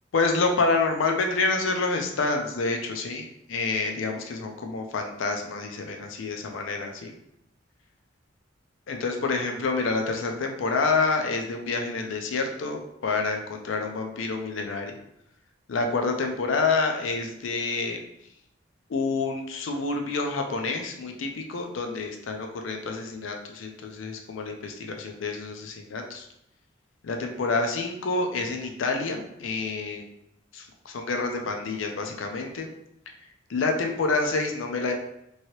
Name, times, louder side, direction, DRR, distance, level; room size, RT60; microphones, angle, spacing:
voice 1, 0.1-7.1 8.9-14.9 15.7-18.0 18.9-26.3 27.0-30.0 30.5-32.7 33.5-34.9, left 3 dB, 90° left, 3 dB, 0.4 m, -28 dB
3.0 x 2.7 x 2.9 m, 0.79 s
head